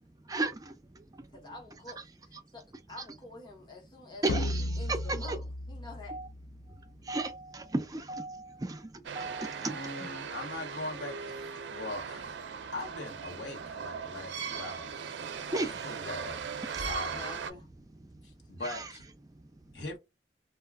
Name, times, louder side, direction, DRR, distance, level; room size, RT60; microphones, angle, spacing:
voice 1, 0.2-1.5 4.2-5.4 6.1-6.3 6.7-10.1 15.5-15.8 16.6-16.9 18.0-18.2 18.6-18.9 19.3-19.7, right 2 dB, 20° right, 0.3 m, -36 dB
voice 2, 1.3-4.3 4.6-6.2 15.4-16.0 17.0-17.7, left 2 dB, 25° left, 0.9 m, -48 dB
sound 1, 4.3-6.9, left 1 dB, 60° left, 0.4 m, -35 dB
sound 2, 9.0-17.5, right 6 dB, 85° right, 0.4 m, -39 dB
voice 3, 9.6-12.3 12.7-15.0 15.6-16.4 16.8-17.3 18.2-19.0 19.7-20.0, left 2 dB, 85° left, 1.0 m, -41 dB
2.3 x 2.2 x 3.4 m
head